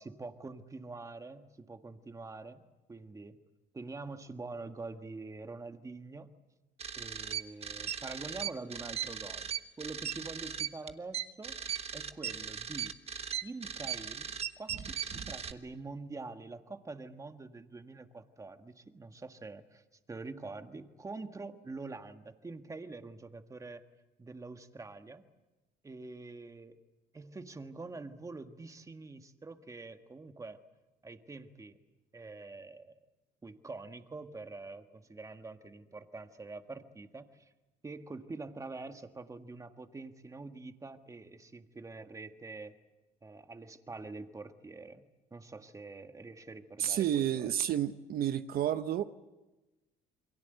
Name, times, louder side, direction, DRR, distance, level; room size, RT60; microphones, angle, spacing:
voice 1, 0.0-3.4 3.7-6.3 7.0-9.5 9.8-11.5 11.9-12.9 13.4-19.8 20.1-23.8 24.2-25.2 25.8-26.8 27.1-30.6 31.0-31.8 32.1-32.9 33.4-37.5 37.8-42.8 43.2-45.0 45.3-47.5, right 3 dB, 20° right, 1.6 m, -45 dB
sound 1, 6.8-15.5, right 8 dB, 40° right, 1.4 m, -38 dB
voice 2, 46.8-49.0, right 11 dB, 60° right, 0.9 m, -30 dB
28.5 x 23.0 x 8.0 m
cardioid pair, 110°, 17 cm